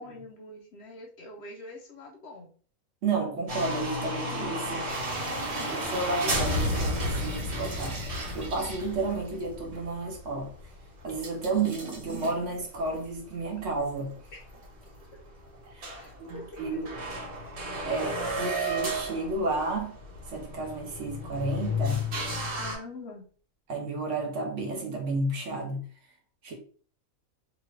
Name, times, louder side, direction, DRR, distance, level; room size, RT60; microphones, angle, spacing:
voice 1, 0.0-2.5 5.6-5.8 14.3-14.4 14.8-15.2 16.0-17.0 22.6-23.3, left 2 dB, 60° left, 0.8 m, -45 dB
voice 2, 3.0-5.0 5.2-8.0 8.3-10.5 11.0-14.1 15.7-16.9 17.8-19.9 20.3-22.0 23.7-25.8 26.4-26.5, right 3 dB, 65° right, 1.2 m, -32 dB
sound 1, 3.5-11.7 11.9-12.0 12.6-12.7 13.6-13.7 13.9-14.0 14.5-14.6 14.9-15.3 15.6-15.7 15.8-22.8, equal, 80° right, 1.8 m, -33 dB
sound 2, 4.9-9.7 10.0-10.1 11.1-13.3 13.7-15.0 15.4-16.6 17.0-17.5 17.8-17.9, right 3 dB, 40° right, 0.8 m, -41 dB
3.0 x 2.4 x 3.2 m
omnidirectional pair, 1.4 m